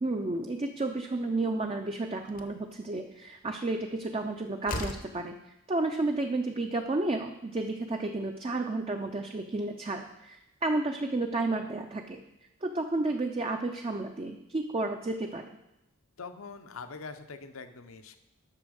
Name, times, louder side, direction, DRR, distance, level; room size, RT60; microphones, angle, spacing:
voice 1, 0.0-5.3 5.7-12.2 12.6-15.5, right 2 dB, 25° right, 3 dB, 0.5 m, -31 dB
Slam, 1.6-1.7 2.3-2.6 4.1-4.2 4.6-5.2, left 2 dB, 40° left, 0.7 m, -36 dB
voice 2, 16.2-18.2, left 4 dB, 70° left, 9 dB, 0.8 m, -43 dB
8.4 x 6.0 x 6.4 m, 0.88 s
head